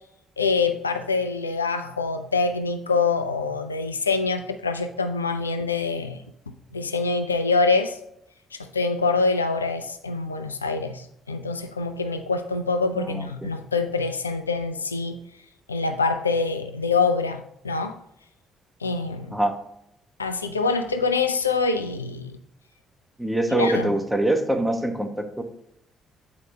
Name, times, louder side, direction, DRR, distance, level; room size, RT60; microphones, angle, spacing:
voice 1, 0.4-6.2 6.7-8.0 8.5-15.2 15.7-18.0 18.8-19.4 20.2-22.4 23.5-23.9, left 4 dB, 85° left, 8 dB, 0.3 m, -25 dB
voice 2, 23.2-25.4, right 1 dB, 5° right, 5 dB, 1.2 m, -24 dB
8.4 x 4.8 x 3.8 m, 0.78 s
figure-of-eight pair, 45°, 0 cm